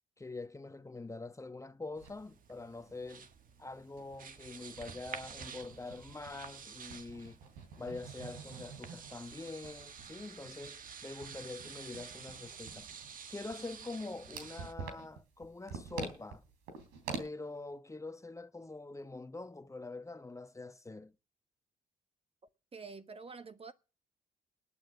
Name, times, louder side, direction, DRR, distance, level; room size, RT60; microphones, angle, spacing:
voice 1, 0.2-3.3 3.6-7.4 7.8-12.9 13.3-16.4 17.2-21.1, left 3 dB, 20° left, 1.1 m, -45 dB
sound 1, 2.0-14.7, right 6 dB, 55° right, 1.5 m, -50 dB
sound 2, 2.0-2.1 2.5-2.6 2.9-3.0 3.5-6.6 6.9-17.2, right 5 dB, 85° right, 3.4 m, -47 dB
voice 2, 22.7-23.7, right 4 dB, 35° right, 1.3 m, -47 dB
20.0 x 8.9 x 6.2 m
hypercardioid pair, 50°, 17 cm